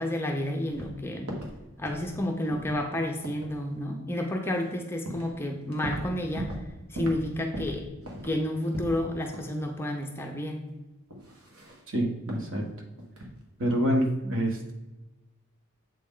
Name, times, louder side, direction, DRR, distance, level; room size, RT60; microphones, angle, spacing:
voice 1, 0.0-1.3 1.8-6.5 6.9-7.9 8.2-10.7, left 1 dB, 10° left, 2 dB, 0.5 m, -30 dB
sound 1, 0.7-0.9 1.3-2.2 2.5-2.8 3.2-3.5 4.6-4.7 5.1-5.3 5.6-6.7 7.0-7.2 7.5-9.0 9.3-9.5 9.9-10.0 11.1-11.8 12.3-12.5 13.0-13.3 13.6-13.8, right 1 dB, 85° right, 1.4 m, -38 dB
voice 2, 11.9-12.6 13.6-14.7, equal, 60° right, 1 dB, 1.2 m, -27 dB
7.6 x 4.2 x 3.7 m, 1.1 s
head